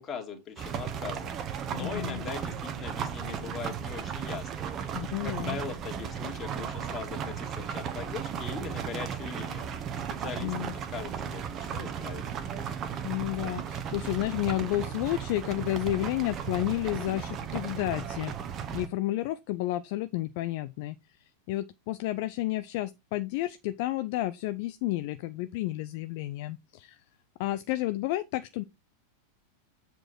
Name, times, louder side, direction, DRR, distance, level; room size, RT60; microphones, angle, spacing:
voice 1, 0.0-1.4 1.7-9.7 10.2-11.5 11.7-12.2, left 6 dB, 25° left, 2.3 m, -40 dB
sound 1, 0.6-18.9, right 8 dB, 30° right, 1.1 m, -35 dB
voice 2, 1.8-2.2 4.9-5.6 10.4-10.7 13.0-18.3 18.7-20.9 21.5-27.0 27.4-28.6, left 16 dB, 50° left, 0.4 m, -31 dB
7.7 x 4.5 x 4.5 m
figure-of-eight pair, 90°, 0 cm